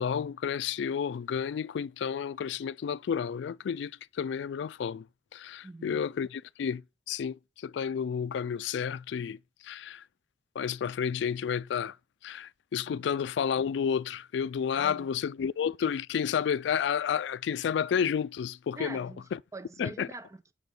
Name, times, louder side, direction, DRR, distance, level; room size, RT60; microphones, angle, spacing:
voice 1, 0.0-5.0 5.3-6.8 7.1-9.4 9.6-10.0 10.6-12.0 12.2-19.4 19.8-20.1, left 7 dB, 70° left, 0.3 m, -31 dB
voice 2, 5.6-6.0 12.9-13.1 14.7-15.1 18.8-20.5, right 2 dB, 15° right, 0.5 m, -44 dB
6.2 x 5.3 x 5.9 m
head